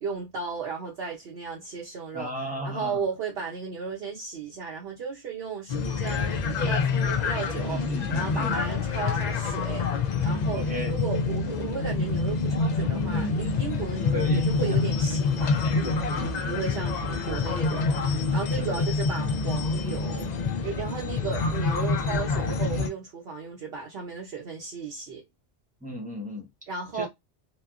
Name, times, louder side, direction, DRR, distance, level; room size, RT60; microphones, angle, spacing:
voice 1, 0.0-2.3 2.6-7.8 8.1-20.3 20.6-25.2 26.7-27.1, right 5 dB, 65° right, 0.9 m, -35 dB
voice 2, 2.1-3.0 7.7-8.6 10.5-10.9 14.1-14.8 15.8-16.7 18.6-18.8 25.8-26.5 26.9-27.1, left 1 dB, 10° right, 0.8 m, -34 dB
sound 1, 5.7-22.9, left 4 dB, 60° left, 0.4 m, -27 dB
2.8 x 2.1 x 2.4 m
omnidirectional pair, 1.2 m